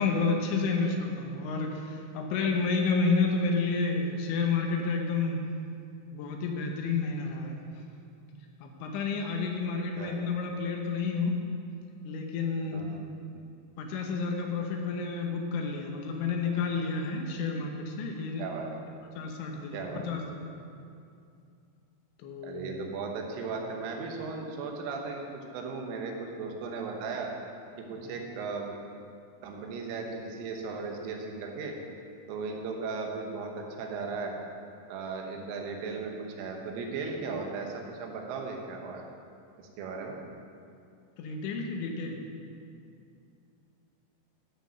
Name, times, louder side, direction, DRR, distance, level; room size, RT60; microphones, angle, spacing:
voice 1, 0.0-5.4 6.1-7.6 8.6-11.4 12.0-12.8 13.8-18.5 19.2-20.6 22.2-22.7 27.9-28.0 41.2-42.2, left 4 dB, 75° left, 2 dB, 3.1 m, -30 dB
voice 2, 19.7-20.1 22.4-27.3 27.8-28.7 29.4-31.8 32.3-34.4 34.9-39.0 39.6-40.2, right 4 dB, 85° right, 1 dB, 3.6 m, -36 dB
13.5 x 5.3 x 6.3 m, 2.5 s
omnidirectional pair, 5.7 m